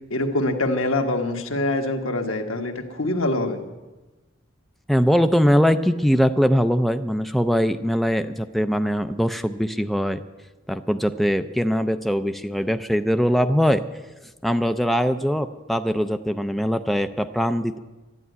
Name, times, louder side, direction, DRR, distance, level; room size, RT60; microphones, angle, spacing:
voice 1, 0.1-3.6, left 2 dB, 85° left, 3 dB, 1.6 m, -24 dB
voice 2, 4.9-10.2 10.7-13.8 14.4-17.8, equal, ahead, 9 dB, 0.4 m, -21 dB
12.5 x 11.0 x 9.3 m, 1.2 s
head